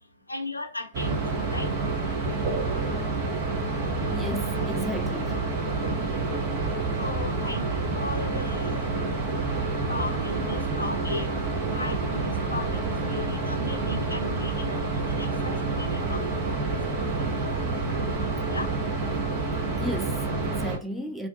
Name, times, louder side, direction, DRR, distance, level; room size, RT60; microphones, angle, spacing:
voice 1, 0.3-1.7 7.0-8.9 9.1-9.3 9.7-11.3 11.7-17.1 17.4-17.7 18.2-18.7, left 2 dB, 85° left, 0.5 m, -37 dB
sound 1, 0.9-20.8, right 3 dB, 35° right, 0.7 m, -28 dB
voice 2, 4.1-5.4 19.8-21.3, equal, ahead, 0.4 m, -34 dB
2.5 x 2.2 x 2.5 m
figure-of-eight pair, 110°, 0 cm